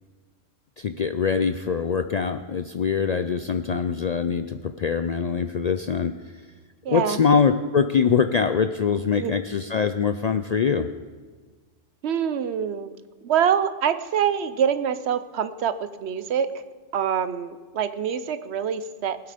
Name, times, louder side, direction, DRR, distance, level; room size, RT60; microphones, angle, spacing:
voice 1, 0.8-6.1 6.9-10.9, left 6 dB, 60° left, 8 dB, 0.4 m, -23 dB
voice 2, 6.8-7.2 9.2-9.3 12.0-12.9 13.2-16.5 16.9-19.2, right 8 dB, 65° right, 12 dB, 1.0 m, -25 dB
19.0 x 8.2 x 5.1 m, 1.4 s
omnidirectional pair, 1.2 m